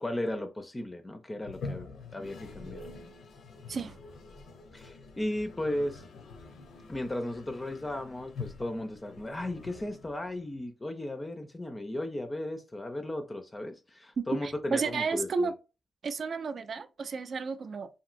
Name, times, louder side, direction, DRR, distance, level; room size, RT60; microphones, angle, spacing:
voice 1, 0.0-2.8 4.7-6.0 6.9-15.5, left 1 dB, 20° left, 0.4 m, -35 dB
Toilet flush, 1.4-10.5, left 4 dB, 75° left, 0.6 m, -45 dB
voice 2, 14.2-15.5 16.0-17.9, right 4 dB, 55° right, 0.3 m, -32 dB
2.9 x 2.6 x 2.5 m
cardioid pair, 90°, 0 cm